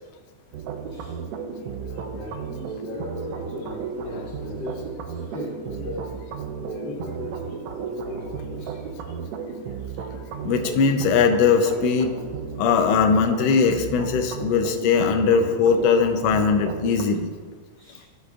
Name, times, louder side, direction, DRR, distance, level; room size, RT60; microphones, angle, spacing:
sound 1, 0.5-17.0, right 5 dB, 75° right, 1.6 m, -34 dB
voice 1, 1.8-4.8 5.1-6.0 6.5-7.4 7.8-8.7 17.8-18.1, left 2 dB, 45° left, -8 dB, 1.6 m, -38 dB
voice 2, 10.4-12.1 12.6-17.3, left 5 dB, 75° left, 6 dB, 1.5 m, -20 dB
12.0 x 6.4 x 2.4 m, 1.4 s
omnidirectional pair, 3.5 m